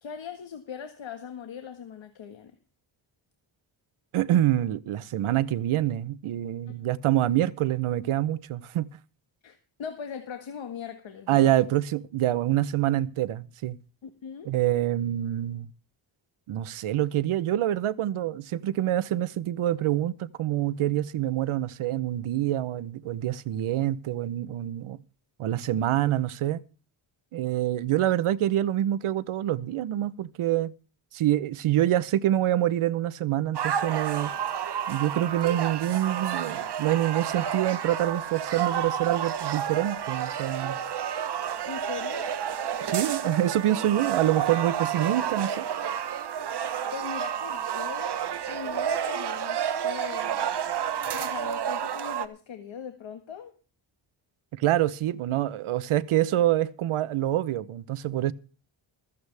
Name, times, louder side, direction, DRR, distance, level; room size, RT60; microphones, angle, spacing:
voice 1, 0.0-2.5 9.4-11.6 14.0-14.5 41.6-42.4 46.6-50.4 51.1-53.5, left 7 dB, 70° left, 1.7 m, -40 dB
voice 2, 4.1-8.9 11.3-13.8 14.4-15.7 16.5-25.0 25.4-26.6 27.3-30.7 31.1-34.3 34.9-40.8 42.8-45.6 54.5-58.3, right 13 dB, 85° right, 0.9 m, -26 dB
sound 1, 33.5-52.3, right 8 dB, 55° right, 1.1 m, -30 dB
15.0 x 14.5 x 3.4 m
cardioid pair, 80°, 48 cm